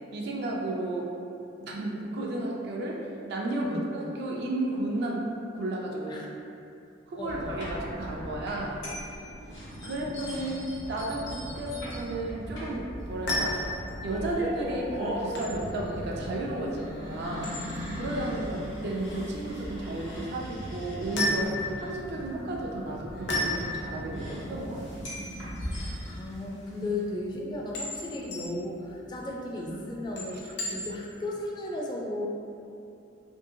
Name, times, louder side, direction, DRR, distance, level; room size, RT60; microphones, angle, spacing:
voice 1, 0.1-1.1 1.6-6.3 7.1-8.8 9.8-17.6 17.9-25.0 29.7-29.8, right 1 dB, 60° right, -2 dB, 0.4 m, -33 dB
voice 2, 7.1-7.6 26.1-32.3, left 2 dB, 25° left, -2 dB, 0.3 m, -35 dB
sound 1, 7.2-26.1, equal, 80° left, 0.9 m, -40 dB
sound 2, 7.6-25.7, right 1 dB, 75° right, 0.8 m, -42 dB
sound 3, 13.0-31.2, left 1 dB, 60° left, 0.6 m, -36 dB
2.7 x 2.7 x 2.6 m, 2.6 s
head